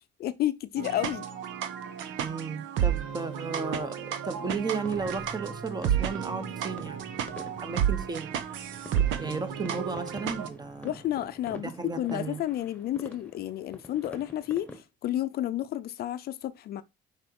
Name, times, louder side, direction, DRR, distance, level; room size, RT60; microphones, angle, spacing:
voice 1, 0.2-1.3 10.8-16.8, left 13 dB, 55° left, 0.6 m, -31 dB
sound 1, 0.8-10.5, right 9 dB, 80° right, 1.2 m, -32 dB
voice 2, 2.2-8.3 9.2-11.0 11.6-12.4, right 4 dB, 20° right, 1.1 m, -34 dB
sound 2, 4.2-14.8, left 1 dB, 5° left, 1.3 m, -48 dB
sound 3, 4.8-11.6, right 3 dB, 45° right, 3.6 m, -48 dB
6.3 x 5.1 x 4.7 m
cardioid pair, 140°, 20 cm